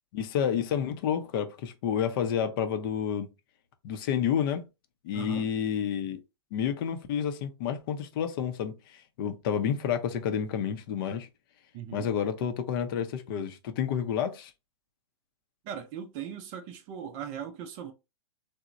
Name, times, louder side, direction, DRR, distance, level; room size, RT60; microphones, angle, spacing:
voice 1, 0.1-3.3 3.8-4.7 5.0-6.2 6.5-11.3 11.9-14.5, left 8 dB, 50° left, 0.5 m, -30 dB
voice 2, 5.1-5.5 11.7-12.1 15.6-17.9, right 8 dB, 40° right, 0.5 m, -39 dB
2.9 x 2.0 x 2.4 m
hypercardioid pair, 115°, 15 cm